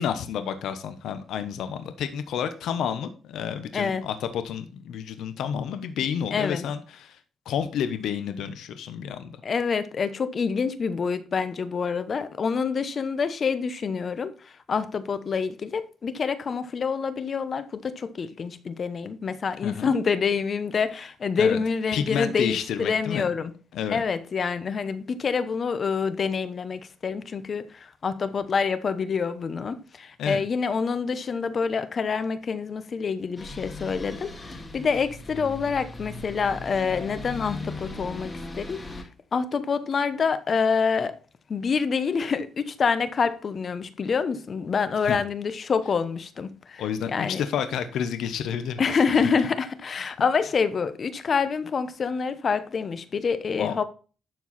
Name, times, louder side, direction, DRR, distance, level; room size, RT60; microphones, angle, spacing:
voice 1, 0.0-7.2 7.5-9.4 19.6-19.9 21.4-21.6 21.9-23.3 23.7-24.0 30.2-30.4 45.0-45.2 46.8-48.8 53.6-53.8, left 8 dB, 75° left, 1.1 m, -30 dB
voice 2, 3.7-4.0 6.3-6.7 9.4-23.5 23.9-41.2 41.5-47.4 48.8-53.8, left 5 dB, 45° left, 0.9 m, -27 dB
sound 1, 33.4-39.0, left 2 dB, 25° left, 2.1 m, -38 dB
12.0 x 4.6 x 4.2 m
cardioid pair, 90°, 0 cm